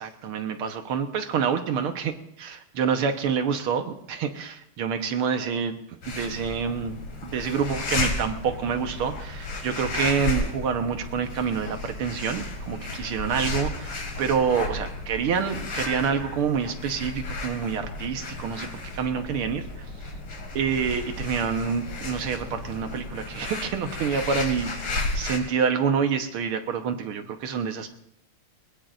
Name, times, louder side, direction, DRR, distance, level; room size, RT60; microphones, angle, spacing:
voice 1, 0.0-5.8 6.1-7.0 7.2-19.9 20.6-27.9, right 6 dB, 90° right, 7 dB, 2.0 m, -27 dB
sound 1, 6.0-25.4, left 2 dB, 70° left, 3.3 m, -33 dB
21.5 x 21.0 x 2.6 m, 0.78 s
omnidirectional pair, 2.3 m